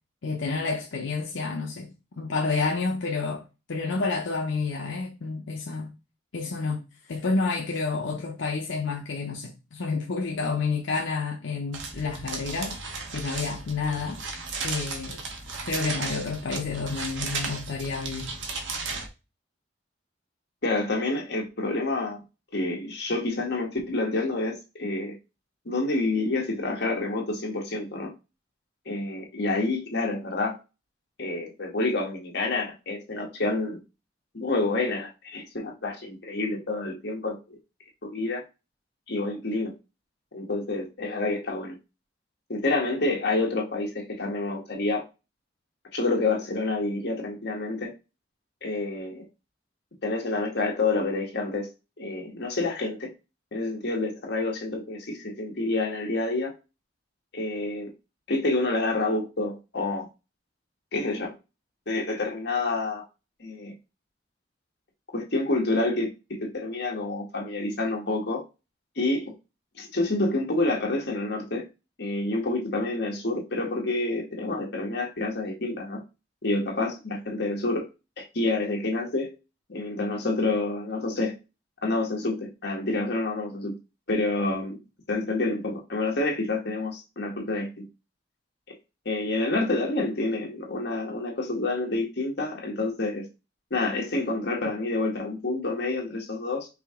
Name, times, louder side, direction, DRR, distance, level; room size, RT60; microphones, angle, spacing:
voice 1, 0.2-1.9 2.2-3.4 3.7-5.9 6.3-6.8 7.1-14.2 14.6-15.2 15.7-18.3, left 4 dB, 80° left, 0.6 m, -29 dB
sound 1, 11.7-19.1, right 4 dB, 85° right, 1.1 m, -35 dB
voice 2, 20.6-22.2 22.5-25.2 25.6-28.1 28.8-30.6 31.2-33.8 34.3-37.6 38.0-38.4 39.1-39.7 40.3-41.8 42.5-45.0 45.9-47.9 48.6-49.2 50.0-51.7 52.0-53.1 53.5-56.5 57.3-57.9 58.3-60.1 60.9-61.3 61.9-63.0 63.4-63.7 65.1-68.4 69.0-69.3 69.8-71.7 72.0-76.0 76.4-77.9 78.2-79.3 79.7-81.4 81.8-83.8 84.1-84.8 85.1-87.8 89.0-93.3 93.7-96.7, left 2 dB, 60° left, 1.3 m, -28 dB
5.0 x 2.8 x 3.6 m
head